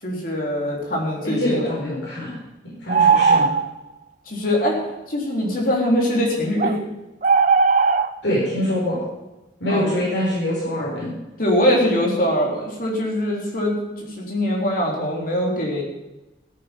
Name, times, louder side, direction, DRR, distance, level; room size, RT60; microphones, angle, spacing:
voice 1, 0.0-1.6 4.3-4.8 5.1-6.7 9.7-9.9 11.4-15.8, left 1 dB, 50° left, -2 dB, 3.8 m, -22 dB
voice 2, 1.2-2.4 2.8-3.5 8.2-9.0 9.6-11.1, left 1 dB, 80° left, -7 dB, 6.2 m, -24 dB
sound 1, 2.9-3.8 6.6-6.7 7.2-8.1, right 5 dB, 40° right, 0.5 m, -17 dB
16.5 x 9.4 x 5.3 m, 1.0 s
head